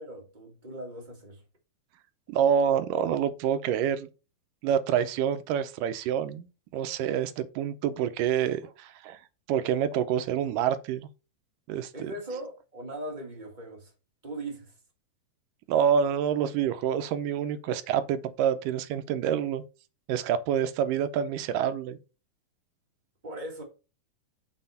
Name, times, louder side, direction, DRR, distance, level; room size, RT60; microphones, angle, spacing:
voice 1, 0.0-1.4 11.9-13.9 14.2-14.7 23.2-23.6, right 1 dB, 30° right, 0.8 m, -39 dB
voice 2, 2.3-4.1 4.6-6.5 6.7-9.2 9.5-11.1 11.7-12.1 15.7-19.6 20.1-22.0, right 8 dB, 80° right, 2.1 m, -27 dB
7.6 x 4.2 x 5.5 m
omnidirectional pair, 4.0 m